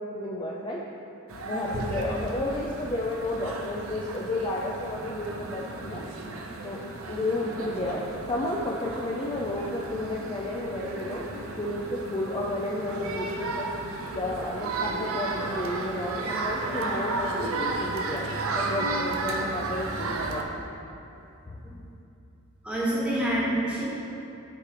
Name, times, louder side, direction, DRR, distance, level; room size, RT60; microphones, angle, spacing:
voice 1, 0.1-0.8 1.4-6.0 6.6-11.2 11.6-13.7 14.1-18.3 18.6-20.5 21.5-21.6, left 1 dB, 20° left, -3 dB, 0.4 m, -32 dB
sound 1, 1.3-20.4, right 3 dB, 65° right, 0.6 m, -33 dB
voice 2, 22.6-23.8, right 1 dB, 5° right, -8 dB, 1.4 m, -27 dB
8.2 x 3.3 x 5.0 m, 2.8 s
head